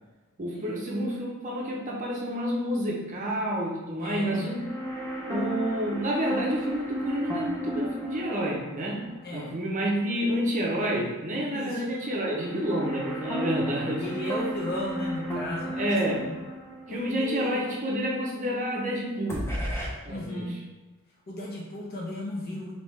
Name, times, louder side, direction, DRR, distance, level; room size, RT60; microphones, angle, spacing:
voice 1, 0.4-4.7 5.2-14.0 14.3-14.4 15.8-16.3 16.9-19.6 20.0-20.5, equal, 35° right, -2 dB, 0.6 m, -29 dB
voice 2, 4.0-4.4 9.2-9.5 11.5-11.8 14.0-16.3 16.9-17.6 20.1-20.6 21.3-22.7, left 1 dB, 45° left, -3 dB, 0.8 m, -35 dB
sound 1, 4.2-10.5 10.8-10.9 12.0-18.9 19.3-19.9, right 1 dB, 10° left, 0.6 m, -35 dB
3.3 x 2.8 x 3.2 m, 1.2 s
head